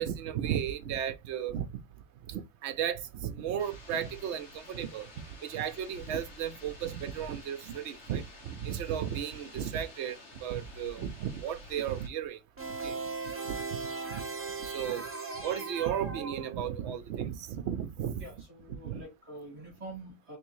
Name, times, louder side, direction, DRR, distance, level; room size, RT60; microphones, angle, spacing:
voice 1, 0.0-1.8 2.3-5.1 5.4-12.4 12.7-13.0 13.4-13.6 14.1-14.2 14.6-15.0 15.4-18.2 18.8-19.0, right 9 dB, 65° right, 0.9 m, -34 dB
sound 1, 3.6-12.1, left 1 dB, 60° left, 1.5 m, -50 dB
sound 2, 12.6-16.9, right 4 dB, 10° right, 0.7 m, -38 dB
voice 2, 18.2-20.4, right 2 dB, 30° right, 1.6 m, -46 dB
3.5 x 3.3 x 3.0 m
omnidirectional pair, 1.4 m